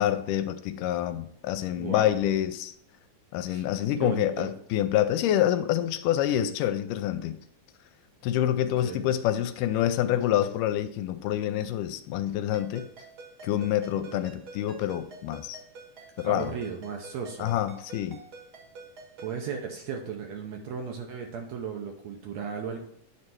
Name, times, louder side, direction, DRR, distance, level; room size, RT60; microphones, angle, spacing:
voice 1, 0.0-2.7 3.3-7.4 8.2-12.9 13.4-15.6 16.2-16.5 17.4-18.2, left 11 dB, 85° left, 10 dB, 2.1 m, -27 dB
voice 2, 1.8-2.1 3.5-3.7 4.0-4.5 8.6-9.0 13.9-14.2 16.2-17.5 19.2-22.9, right 6 dB, 70° right, 3 dB, 1.8 m, -36 dB
Ringtone, 12.5-19.4, right 3 dB, 45° right, 1.3 m, -48 dB
9.5 x 3.3 x 6.0 m, 0.65 s
omnidirectional pair, 3.8 m